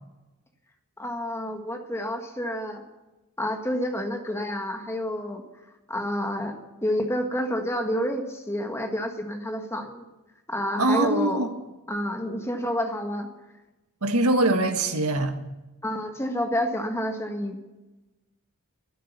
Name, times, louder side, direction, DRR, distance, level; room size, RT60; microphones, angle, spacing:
voice 1, 1.0-2.8 3.4-5.4 5.9-10.0 10.5-11.5 11.9-13.3 15.8-17.6, equal, 10° left, 1.6 m, -29 dB
voice 2, 10.8-11.5 14.0-15.3, right 2 dB, 80° right, 1.6 m, -22 dB
12.5 x 11.5 x 9.4 m
head